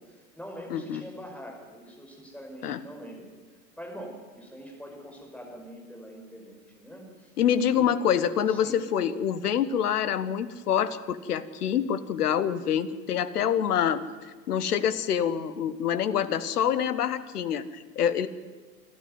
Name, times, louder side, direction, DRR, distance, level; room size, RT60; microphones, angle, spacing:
voice 1, 0.0-3.3 3.8-7.3 7.7-7.9 8.5-8.8, equal, 5° left, 1 dB, 5.3 m, -44 dB
voice 2, 0.7-1.0 2.6-2.8 7.4-14.0 14.5-18.3, left 9 dB, 65° left, 15 dB, 1.3 m, -26 dB
26.5 x 12.5 x 9.4 m, 1.4 s
figure-of-eight pair, 85°, 49 cm